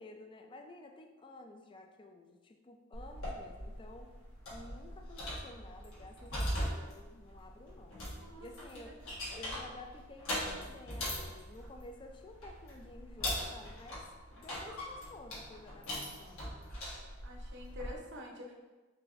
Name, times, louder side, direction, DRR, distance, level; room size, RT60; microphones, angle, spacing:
voice 1, 0.0-4.1 4.5-8.0 8.4-9.0 9.3-14.1 14.3-16.4, left 2 dB, 25° left, 4 dB, 0.3 m, -52 dB
sound 1, 2.9-18.0, equal, 65° left, 1.3 m, -41 dB
voice 2, 17.2-18.5, left 1 dB, 55° right, 0 dB, 0.7 m, -47 dB
4.6 x 2.5 x 3.1 m, 1.2 s
head